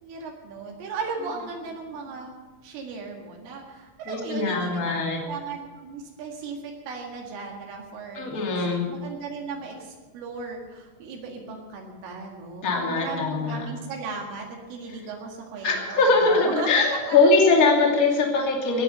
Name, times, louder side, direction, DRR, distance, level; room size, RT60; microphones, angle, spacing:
voice 1, 0.0-2.3 2.6-14.4 14.7-16.7 17.1-17.3, right 4 dB, 75° right, 0 dB, 4.4 m, -36 dB
voice 2, 4.1-5.2 8.1-8.9 12.6-13.6 15.6-18.8, left 3 dB, 30° left, 0 dB, 1.6 m, -21 dB
18.5 x 9.8 x 6.7 m, 1.3 s
omnidirectional pair, 5.9 m